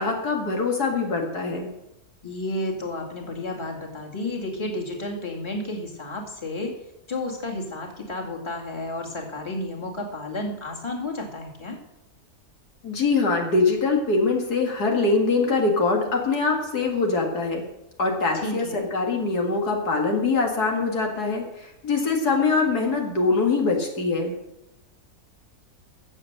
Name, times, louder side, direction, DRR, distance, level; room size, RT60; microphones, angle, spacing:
voice 1, 0.0-1.7 12.8-17.6 18.0-24.3, left 3 dB, 80° left, 2 dB, 2.6 m, -23 dB
voice 2, 2.2-6.7 7.1-11.8 18.3-18.9, left 2 dB, 15° left, 0 dB, 2.2 m, -32 dB
14.0 x 7.6 x 6.6 m, 0.87 s
omnidirectional pair, 1.6 m